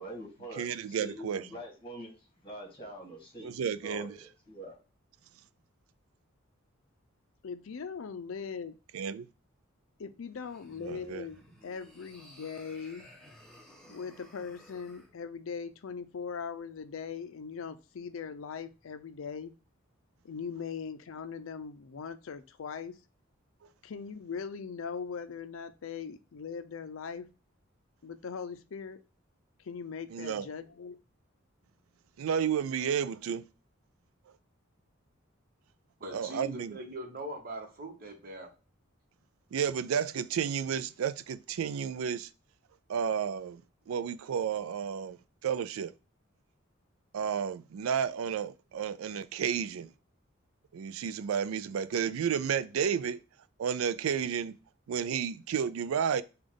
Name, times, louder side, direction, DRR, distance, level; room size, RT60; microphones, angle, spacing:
voice 1, 0.0-2.1 2.4-4.8, right 1 dB, 25° left, 1.4 m, -45 dB
voice 2, 0.5-1.5 3.4-4.2 8.9-9.3 10.8-11.2 30.1-30.5 32.2-33.5 36.1-36.8 39.5-42.3 42.9-43.6 43.9-45.9 47.1-49.9 50.7-53.2 53.6-54.5 54.9-56.2, right 7 dB, 85° right, 0.4 m, -32 dB
voice 3, 7.4-8.8 10.0-13.1 13.9-19.5 20.2-23.0 23.8-27.3 28.0-29.0 29.6-31.0, left 6 dB, 70° left, 0.5 m, -40 dB
sound 1, 10.3-15.1, equal, 5° left, 1.0 m, -55 dB
voice 4, 36.0-38.5, right 1 dB, 45° right, 1.1 m, -41 dB
5.2 x 2.4 x 3.7 m
head